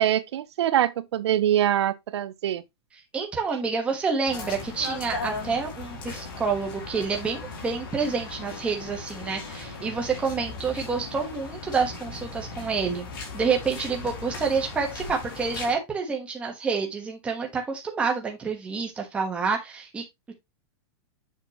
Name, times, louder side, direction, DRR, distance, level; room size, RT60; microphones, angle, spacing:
voice 1, 0.0-2.6, right 11 dB, 80° right, 0.7 m, -24 dB
voice 2, 3.1-13.1 13.3-20.3, right 5 dB, 10° right, 1.2 m, -28 dB
sound 1, 4.3-15.7, left 3 dB, 50° left, 2.8 m, -37 dB
7.3 x 5.8 x 2.9 m
supercardioid pair, 175°, 14 cm